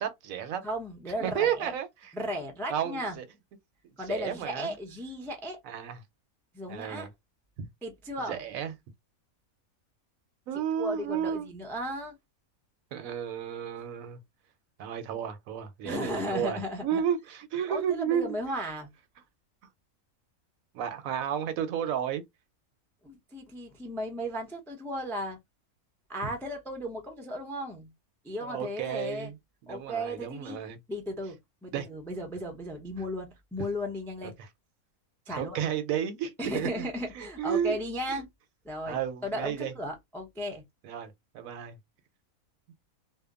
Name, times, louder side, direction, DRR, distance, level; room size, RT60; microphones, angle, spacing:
voice 1, 0.0-0.6 1.2-2.1 2.7-3.2 4.1-4.7 5.6-6.0 6.7-7.1 7.6-7.7 8.3-8.7 10.5-11.5 12.9-14.2 14.8-18.4 20.7-22.2 26.2-26.3 28.4-29.3 29.6-30.8 31.7-31.9 34.4-34.5 35.3-36.9 37.1-37.8 38.1-38.2 38.9-39.7 40.8-41.8, right 9 dB, 75° right, 1.0 m, -32 dB
voice 2, 0.6-1.7 2.1-3.2 4.0-5.6 6.5-7.1 7.8-8.4 10.8-12.2 15.8-17.0 17.7-18.9 23.0-25.4 26.1-27.9 28.2-29.3 29.7-30.6 30.9-34.3 35.3-35.6 36.4-38.3 38.6-39.0 39.2-40.6, equal, 5° left, 0.3 m, -35 dB
2.8 x 2.1 x 2.3 m
omnidirectional pair, 1.5 m